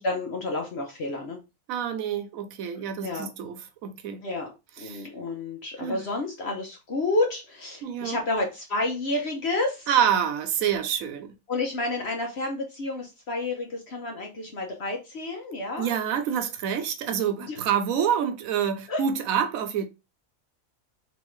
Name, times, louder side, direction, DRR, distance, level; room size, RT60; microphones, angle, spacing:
voice 1, 0.0-1.4 3.0-3.3 4.2-9.9 11.5-15.9 17.4-17.7 18.9-19.0, left 2 dB, 55° left, 1.0 m, -30 dB
voice 2, 1.7-4.2 4.9-5.1 5.8-6.0 7.8-8.2 9.9-11.3 15.8-19.9, right 8 dB, 90° right, 1.0 m, -27 dB
3.5 x 3.1 x 3.1 m
omnidirectional pair, 1.4 m